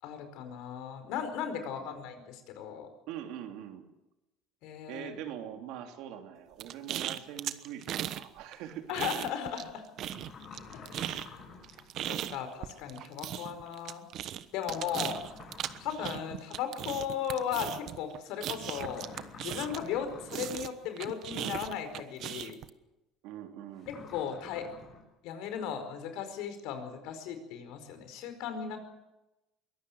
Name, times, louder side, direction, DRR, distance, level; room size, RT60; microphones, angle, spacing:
voice 1, 0.0-2.9 4.6-5.1 8.9-9.9 10.7-11.3 12.1-14.0 14.5-15.2 15.8-19.1 19.4-22.6 23.9-24.7 25.2-28.8, left 8 dB, 75° left, 9 dB, 4.8 m, -36 dB
voice 2, 3.1-3.8 4.9-8.8 23.2-23.9, right 10 dB, 75° right, 5 dB, 3.1 m, -43 dB
sound 1, 6.6-8.2 8.5-9.7 10.0-20.0 20.3-22.7, right 11 dB, 55° right, 1.1 m, -37 dB
sound 2, 10.1-11.9 14.6-16.3 18.7-20.7 23.8-25.0, left 5 dB, 45° left, 6.5 m, -49 dB
23.0 x 17.5 x 7.9 m, 0.95 s
cardioid pair, 130°, 0 cm